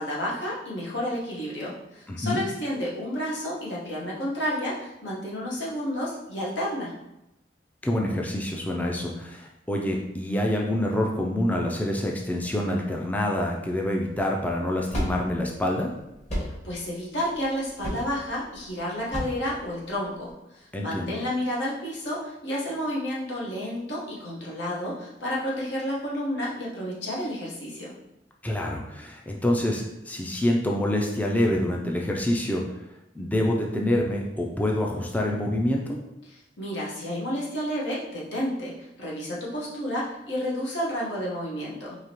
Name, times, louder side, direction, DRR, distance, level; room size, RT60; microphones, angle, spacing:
voice 1, 0.0-6.9 16.3-27.9 36.6-42.0, equal, 80° left, -6 dB, 1.2 m, -31 dB
voice 2, 2.1-2.4 7.8-15.9 20.7-21.1 28.4-32.6 33.2-36.0, left 1 dB, 10° left, 0 dB, 0.3 m, -26 dB
sound 1, 14.1-20.3, equal, 40° left, 1.4 m, -34 dB
4.8 x 2.8 x 2.9 m, 0.89 s
head